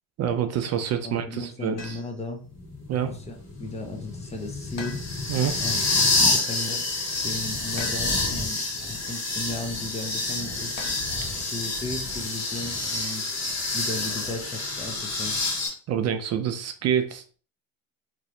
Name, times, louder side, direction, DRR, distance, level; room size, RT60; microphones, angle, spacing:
voice 1, 0.2-2.0 2.9-3.1 5.3-5.6 15.9-17.4, right 8 dB, 50° right, 8 dB, 0.4 m, -27 dB
voice 2, 1.0-2.4 3.0-5.0 5.6-10.8 11.4-13.3 13.7-15.4, left 2 dB, 20° left, 3 dB, 0.5 m, -36 dB
sound 1, 1.8-2.3 4.8-5.5 7.8-8.5 10.8-11.6, left 4 dB, 70° left, 1.0 m, -41 dB
sound 2, 2.5-15.7, left 3 dB, 50° left, 1.4 m, -28 dB
2.8 x 2.7 x 3.1 m, 0.40 s
cardioid pair, 130°, 35 cm